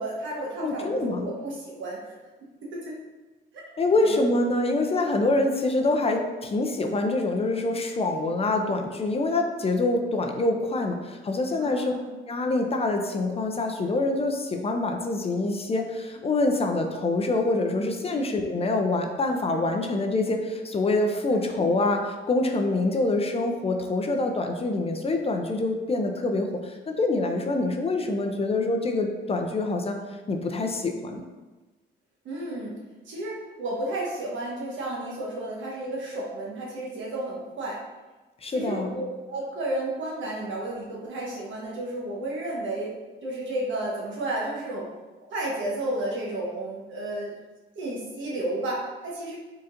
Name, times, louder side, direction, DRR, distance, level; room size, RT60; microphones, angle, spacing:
voice 1, 0.0-2.1 2.7-3.0 3.5-3.6 3.9-4.2 11.6-12.1 18.1-18.3 21.3-21.5 32.2-32.8 33.0-37.8 38.5-42.9 43.2-44.9 45.3-47.3 47.7-49.4, right 1 dB, 70° right, -3 dB, 1.2 m, -32 dB
voice 2, 0.6-1.3 3.8-11.9 12.3-30.0 30.3-31.2 38.4-39.0, left 2 dB, 30° left, 4 dB, 0.5 m, -25 dB
4.1 x 3.8 x 2.5 m, 1.2 s
cardioid pair, 90°, 20 cm